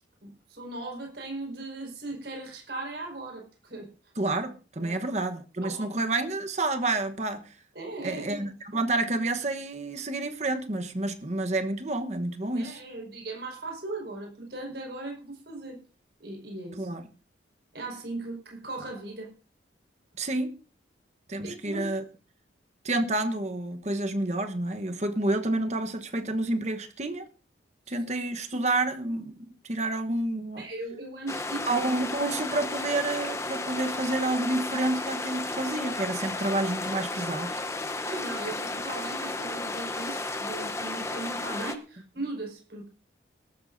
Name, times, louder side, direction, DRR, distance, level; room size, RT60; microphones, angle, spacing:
voice 1, 0.2-3.9 4.8-5.0 5.6-5.9 7.7-8.5 12.5-15.8 16.2-16.9 17.7-19.3 21.4-21.9 27.9-28.0 30.6-31.7 38.0-42.9, right 2 dB, 60° right, 5.1 m, -38 dB
voice 2, 4.2-7.5 8.0-12.8 16.8-17.1 20.2-20.5 21.3-22.0 22.8-27.3 27.9-29.4 29.6-30.6 31.7-37.6, right 2 dB, 35° right, 1.1 m, -29 dB
sound 1, 31.3-41.8, left 2 dB, 15° left, 0.8 m, -33 dB
21.5 x 12.5 x 2.7 m
head